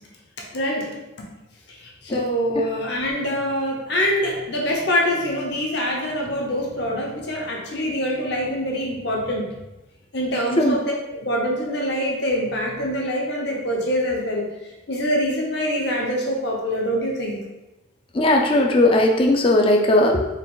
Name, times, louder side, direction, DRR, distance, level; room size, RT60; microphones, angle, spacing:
voice 1, 0.5-1.0 1.7-9.5 10.1-14.5 14.9-17.4, equal, 55° left, -1 dB, 0.9 m, -24 dB
voice 2, 18.1-20.2, left 1 dB, 25° left, 2 dB, 0.4 m, -17 dB
4.6 x 2.4 x 3.7 m, 1.0 s
head